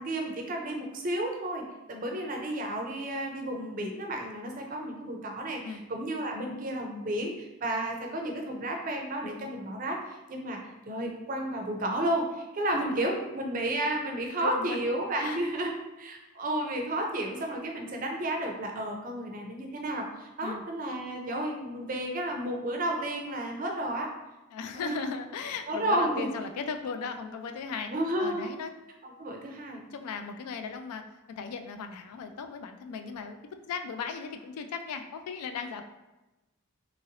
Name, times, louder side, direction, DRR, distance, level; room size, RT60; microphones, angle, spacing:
voice 1, 0.0-10.6 10.9-15.7 16.0-24.1 24.8-25.1 25.7-26.3 27.9-28.5 29.0-29.8, right 1 dB, 35° right, 2 dB, 0.4 m, -32 dB
voice 2, 14.4-14.8 15.2-15.4 20.4-20.6 24.5-27.9 28.2-28.7 29.9-31.0 31.4-33.4 33.7-35.8, left 5 dB, 90° left, 7 dB, 0.3 m, -37 dB
2.9 x 2.6 x 2.8 m, 1.0 s
head